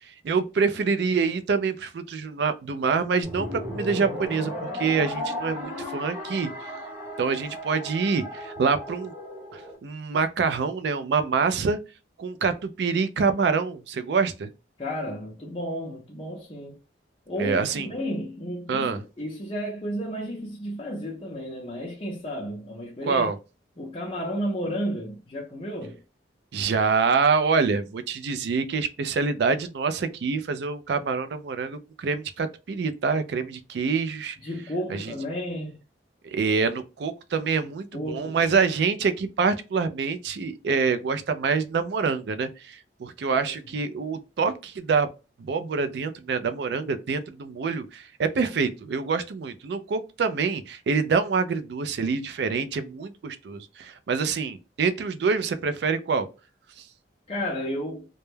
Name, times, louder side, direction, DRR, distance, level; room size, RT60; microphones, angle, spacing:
voice 1, 0.0-6.7 7.2-9.1 9.5-11.8 12.2-14.5 17.4-17.9 18.7-19.0 23.1-23.4 26.5-34.4 34.9-35.1 36.2-45.1 45.4-56.3 56.8-56.9, right 5 dB, 65° right, 0.3 m, -26 dB
sound 1, 3.2-9.8, left 1 dB, 10° right, 0.9 m, -35 dB
voice 2, 14.8-16.8 17.3-23.3 23.8-26.0 34.4-35.8 37.9-38.3 43.4-43.5 57.3-58.1, equal, 30° left, 0.5 m, -32 dB
2.2 x 2.1 x 3.1 m
head